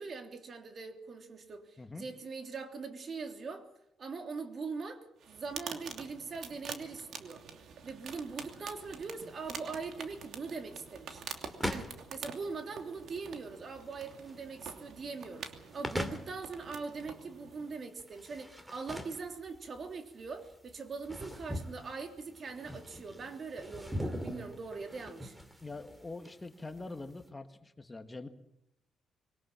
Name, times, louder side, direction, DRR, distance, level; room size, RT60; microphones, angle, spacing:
voice 1, 0.0-3.7 4.0-7.4 7.8-11.2 11.7-25.3, right 4 dB, 45° right, 3.2 m, -42 dB
sound 1, 5.2-17.9, right 6 dB, 70° right, 2.8 m, -47 dB
sound 2, 8.1-27.3, equal, 10° right, 2.7 m, -43 dB
voice 2, 25.6-28.3, left 3 dB, 20° left, 1.7 m, -44 dB
22.5 x 19.0 x 7.3 m
cardioid pair, 90°, 0 cm